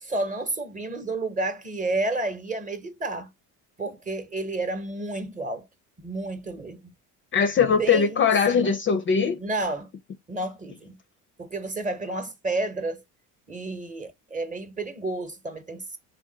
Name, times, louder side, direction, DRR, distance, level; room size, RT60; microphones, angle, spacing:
voice 1, 0.0-3.3 3.8-5.6 6.0-6.9 7.8-8.8 9.4-9.9 10.3-11.0 11.4-13.0 13.5-16.0, right 2 dB, 20° right, 0.9 m, -31 dB
voice 2, 7.3-9.4, left 6 dB, 30° left, 0.4 m, -21 dB
3.6 x 2.2 x 3.9 m
supercardioid pair, 90°, 39 cm